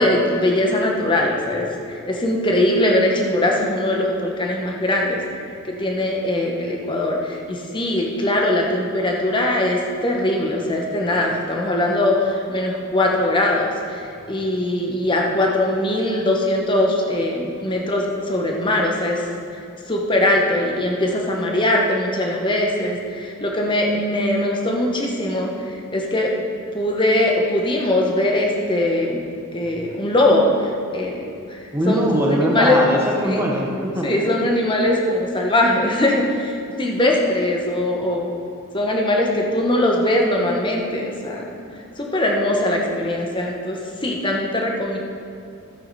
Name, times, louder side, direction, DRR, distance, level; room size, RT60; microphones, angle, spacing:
voice 1, 0.0-5.2 5.6-19.3 19.9-26.3 26.7-32.1 32.4-32.8 33.2-33.4 34.0-38.3 38.7-41.5 42.0-45.0, left 1 dB, 20° left, 0 dB, 1.1 m, -21 dB
voice 2, 31.7-34.1, right 1 dB, 10° right, -1 dB, 1.0 m, -20 dB
12.5 x 8.6 x 4.1 m, 2.5 s
head